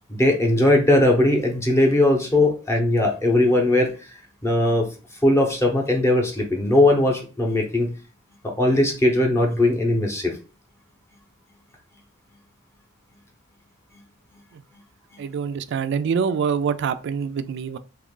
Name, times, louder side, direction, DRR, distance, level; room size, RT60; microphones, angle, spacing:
voice 1, 0.1-3.9 4.4-4.9 5.2-7.9 8.4-10.4, left 1 dB, 15° left, 0.7 m, -19 dB
voice 2, 15.2-17.8, right 6 dB, 55° right, 0.3 m, -25 dB
3.0 x 2.4 x 3.6 m
head